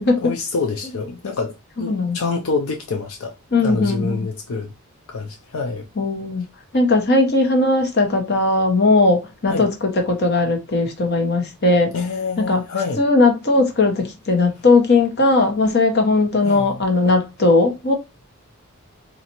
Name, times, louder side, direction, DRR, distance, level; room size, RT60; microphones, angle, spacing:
voice 1, 0.2-4.7 5.1-5.9 9.5-9.7 11.9-13.0 16.4-16.8, left 4 dB, 75° left, 0.5 m, -26 dB
voice 2, 1.8-2.2 3.5-4.2 6.0-6.4 6.7-11.9 12.4-12.6 13.0-17.9, left 2 dB, 45° left, 0.9 m, -18 dB
4.1 x 2.5 x 2.9 m
head